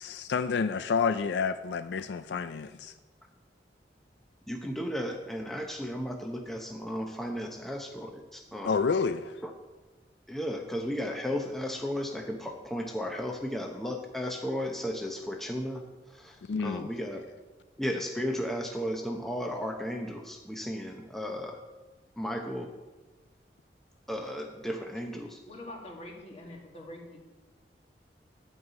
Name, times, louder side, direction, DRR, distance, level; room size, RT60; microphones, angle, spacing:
voice 1, 0.0-2.9 8.6-9.4 16.5-16.9, left 5 dB, 80° left, 11 dB, 0.4 m, -29 dB
voice 2, 4.5-8.7 9.4-9.5 10.3-15.8 16.1-17.2 17.8-21.6 22.2-22.7 24.1-25.4, equal, ahead, 2 dB, 0.7 m, -34 dB
voice 3, 25.5-27.2, left 1 dB, 35° left, -1 dB, 2.1 m, -44 dB
11.0 x 5.5 x 8.1 m, 1.2 s
head